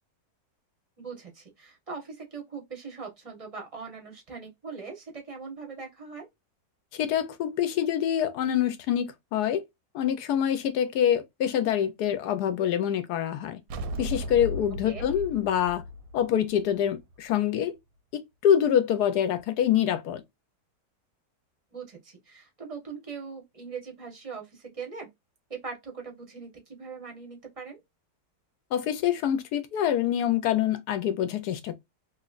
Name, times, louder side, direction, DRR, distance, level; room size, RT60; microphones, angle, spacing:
voice 1, 1.0-6.3 14.8-15.0 21.7-25.1 25.5-27.8, right 5 dB, 25° right, 0.8 m, -41 dB
voice 2, 6.9-9.6 9.9-13.6 14.0-15.8 16.1-17.8 18.1-20.2 28.7-31.8, left 10 dB, 70° left, 1.1 m, -25 dB
sound 1, 13.7-17.1, equal, 90° right, 1.3 m, -36 dB
3.1 x 2.9 x 2.3 m
omnidirectional pair, 2.0 m